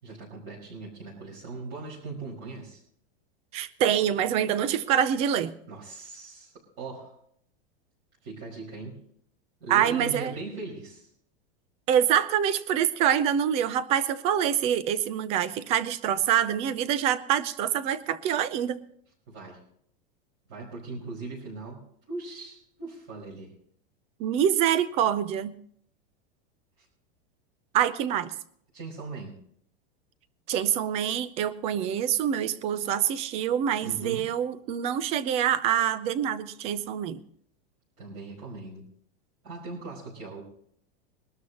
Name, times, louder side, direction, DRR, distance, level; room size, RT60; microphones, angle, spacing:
voice 1, 0.0-2.8 5.6-7.2 8.2-9.0 9.6-11.1 19.3-19.6 20.5-23.6 26.8-26.9 28.7-29.4 33.8-34.3 38.0-38.8 39.4-40.4, right 3 dB, 40° right, -5 dB, 5.4 m, -39 dB
voice 2, 3.5-5.5 9.7-10.3 11.9-18.8 24.2-25.5 27.7-28.3 30.5-37.2, right 9 dB, 20° right, 16 dB, 0.5 m, -25 dB
22.0 x 12.5 x 2.9 m, 0.65 s
supercardioid pair, 175°, 30 cm